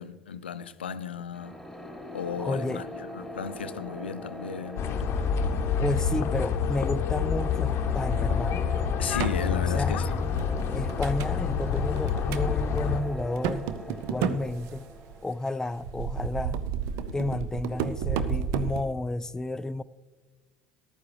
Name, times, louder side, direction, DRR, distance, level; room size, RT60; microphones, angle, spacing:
voice 1, 0.0-1.6 2.1-5.0 8.3-8.4 9.0-10.1, left 7 dB, 85° left, 0.5 m, -35 dB
sound 1, 1.3-16.0, left 1 dB, 5° right, 4.2 m, -40 dB
voice 2, 2.4-2.8 5.5-8.7 9.7-10.0 10.7-14.9 15.2-16.6 17.1-19.8, left 2 dB, 10° left, 0.3 m, -31 dB
sound 2, 4.8-13.0, left 6 dB, 50° left, 0.8 m, -28 dB
sound 3, 9.1-9.4 10.0-11.4 11.8-12.5 12.8-12.9 13.2-15.2 15.8-18.8, right 7 dB, 60° right, 0.6 m, -32 dB
14.0 x 12.0 x 3.2 m
hypercardioid pair, 65°, 6 cm